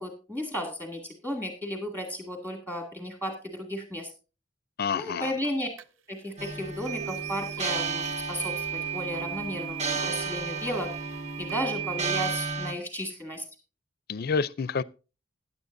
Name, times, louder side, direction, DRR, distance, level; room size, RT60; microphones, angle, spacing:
voice 1, 0.0-4.1 4.9-5.7 6.1-10.9 11.4-13.4, equal, 15° right, 2.0 m, -34 dB
voice 2, 4.8-5.3 14.1-14.8, left 5 dB, 50° left, 0.5 m, -28 dB
sound 1, 5.8-5.9 6.8-12.2, right 11 dB, 70° right, 0.7 m, -36 dB
sound 2, 6.4-12.7, right 4 dB, 35° right, 1.1 m, -33 dB
15.0 x 9.9 x 2.6 m
head